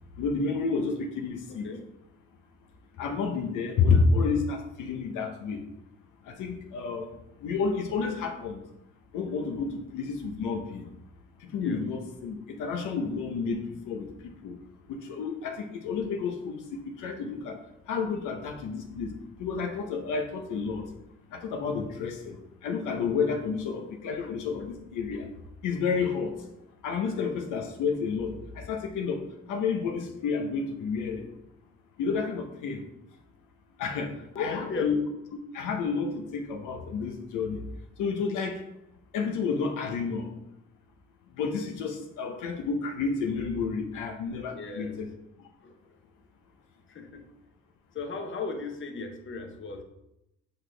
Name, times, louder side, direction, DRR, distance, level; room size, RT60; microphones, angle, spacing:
voice 1, 0.2-1.6 3.0-5.6 6.3-7.1 7.4-8.6 9.1-10.8 11.5-13.6 13.9-14.5 14.9-16.6 16.9-17.6 17.9-19.1 19.4-20.8 21.3-22.4 22.6-25.3 25.6-26.3 26.8-29.2 29.5-31.2 32.0-32.8 33.8-34.1 34.4-35.0 35.5-37.6 38.0-38.6 39.1-40.3 41.4-45.1, left 5 dB, 90° left, 4 dB, 0.9 m, -30 dB
voice 2, 34.3-34.9 44.5-45.0 45.6-46.0 46.9-47.3 47.9-49.8, left 4 dB, 40° left, 4 dB, 1.0 m, -36 dB
7.0 x 4.3 x 3.3 m, 0.84 s
cardioid pair, 90°, 30 cm